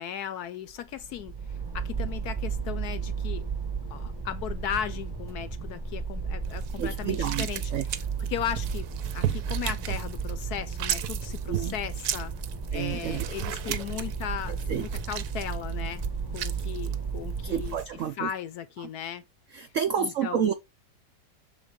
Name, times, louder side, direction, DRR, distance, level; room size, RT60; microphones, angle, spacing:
voice 1, 0.0-3.4 3.9-8.9 9.1-12.3 12.7-16.0 16.3-19.2 20.0-20.5, left 9 dB, 70° left, 1.0 m, -36 dB
sound 1, 0.7-18.0, right 5 dB, 15° right, 1.0 m, -34 dB
sound 2, 6.5-17.9, right 11 dB, 65° right, 1.0 m, -36 dB
voice 2, 6.8-7.5 7.7-7.8 11.5-11.7 12.7-13.2 14.7-14.8 17.4-18.3 19.5-20.5, right 8 dB, 90° right, 0.6 m, -29 dB
6.7 x 4.0 x 5.1 m
omnidirectional pair, 2.0 m